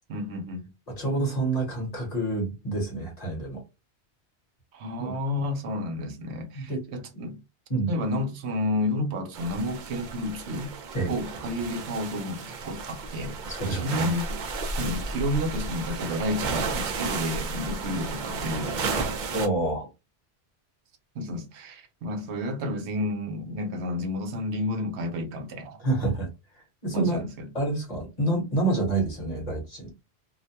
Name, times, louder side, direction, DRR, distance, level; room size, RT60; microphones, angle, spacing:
voice 1, 0.1-0.7 4.7-7.4 7.9-10.7 11.1-13.4 13.7-14.3 14.6-19.1 21.1-25.9 26.9-27.3, left 1 dB, 75° right, 0.9 m, -31 dB
voice 2, 0.9-3.6 5.0-5.1 6.5-6.8 7.7-7.9 10.9-11.1 13.5-14.2 19.3-19.9 25.8-26.3 26.5-27.2 27.5-30.0, right 2 dB, 40° left, 1.0 m, -28 dB
sound 1, 9.3-19.5, right 4 dB, 55° right, 0.6 m, -33 dB
2.5 x 2.1 x 2.7 m
omnidirectional pair, 1.1 m